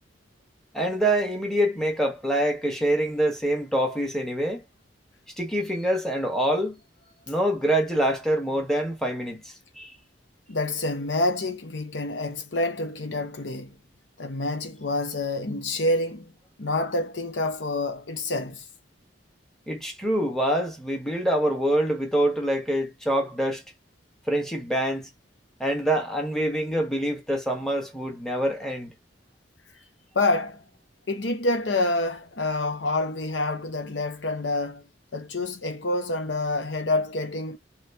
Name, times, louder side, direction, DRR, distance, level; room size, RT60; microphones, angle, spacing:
voice 1, 0.7-4.6 5.4-6.8 7.3-9.9 19.7-23.6 24.3-25.1 25.6-28.9, right 1 dB, 5° left, 1.1 m, -25 dB
voice 2, 10.5-13.8 14.2-16.3 16.6-18.6 30.1-30.6 31.1-34.8 35.1-37.6, left 2 dB, 75° left, 0.9 m, -27 dB
3.1 x 3.0 x 3.1 m
head